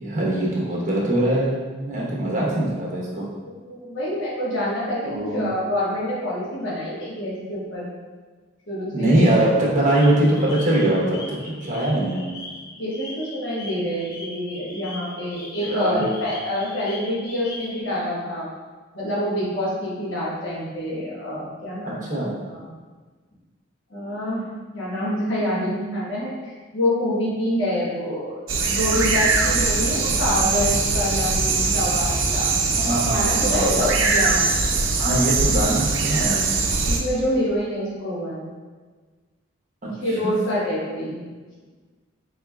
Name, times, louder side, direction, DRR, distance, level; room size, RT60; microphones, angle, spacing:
voice 1, 0.0-3.3 5.0-5.5 8.9-12.3 15.6-16.1 21.8-22.4 32.7-33.7 35.0-36.5 39.8-40.4, right 1 dB, 40° right, -4 dB, 1.0 m, -22 dB
voice 2, 3.7-7.9 8.7-9.3 12.8-18.5 18.9-22.7 23.9-24.4 24.7-28.4 28.7-32.5 33.1-34.5 36.9-38.5 40.0-41.2, left 1 dB, 70° left, -7 dB, 1.2 m, -26 dB
sound 1, 9.9-17.8, left 2 dB, 55° left, 0.8 m, -40 dB
sound 2, 28.5-37.0, right 4 dB, 75° right, 0.5 m, -21 dB
4.4 x 4.1 x 2.3 m, 1.4 s
head